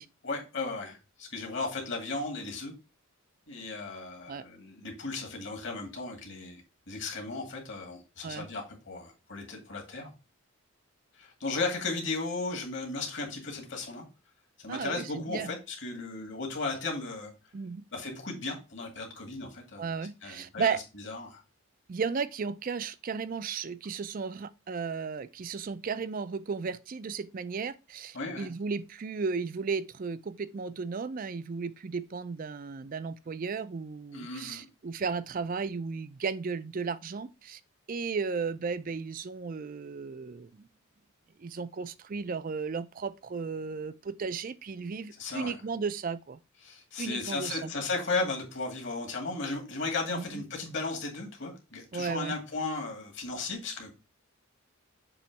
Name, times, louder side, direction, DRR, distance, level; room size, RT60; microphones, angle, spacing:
voice 1, 0.2-2.7 3.5-6.6 6.9-10.1 11.2-14.1 14.6-17.3 17.9-19.9 20.2-21.4 28.1-28.5 34.1-34.7 45.2-45.6 46.6-53.9, left 3 dB, 55° left, 2.0 m, -35 dB
voice 2, 14.7-15.5 17.5-17.8 19.8-20.8 21.9-37.6 37.9-40.6 41.4-46.4 47.0-47.7 50.1-50.4 51.9-52.4, right 5 dB, 40° right, 0.4 m, -34 dB
6.9 x 3.1 x 4.6 m
head